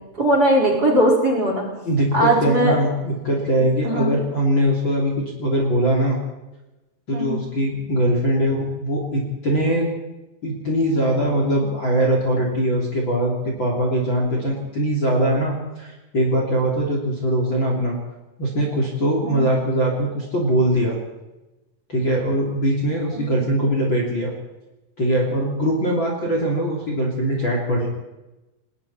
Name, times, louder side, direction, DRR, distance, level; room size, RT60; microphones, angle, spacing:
voice 1, 0.2-1.7 2.1-2.8 3.8-4.1 7.1-7.4 19.2-19.5 23.1-23.2, right 1 dB, 20° right, -2 dB, 5.4 m, -19 dB
voice 2, 1.8-6.2 7.1-9.9 10.4-18.0 18.4-21.0 21.9-24.3 25.0-27.9, right 1 dB, 30° left, -2 dB, 3.8 m, -21 dB
29.0 x 21.0 x 4.4 m, 1.0 s
omnidirectional pair, 4.9 m